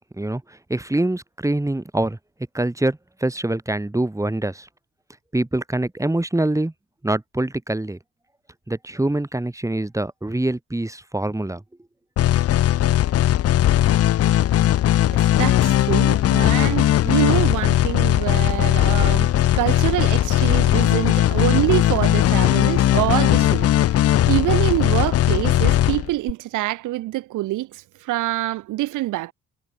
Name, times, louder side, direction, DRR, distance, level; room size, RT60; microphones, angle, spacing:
voice 1, 0.2-2.2 2.5-4.7 5.3-6.7 7.0-8.0 8.7-11.6, right 1 dB, 10° right, 5.6 m, -24 dB
sound 1, 12.2-26.3, left 12 dB, 55° left, 0.5 m, -18 dB
voice 2, 15.1-29.3, right 17 dB, 90° right, 1.4 m, -25 dB
cardioid pair, 90°, 30 cm